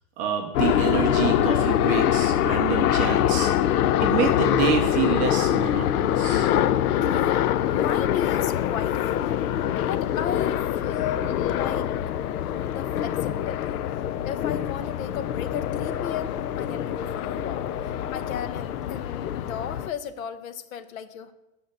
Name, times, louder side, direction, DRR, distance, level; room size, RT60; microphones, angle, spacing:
voice 1, 0.2-3.5 4.0-6.5, right 8 dB, 20° right, 3 dB, 0.5 m, -27 dB
sound 1, 0.5-19.9, left 11 dB, 85° left, 0.6 m, -24 dB
voice 2, 7.0-9.4 9.8-11.9 12.4-13.8 14.2-17.6 18.1-21.3, left 8 dB, 65° left, 12 dB, 1.0 m, -35 dB
8.5 x 5.8 x 6.5 m, 0.99 s
supercardioid pair, 155°, 44 cm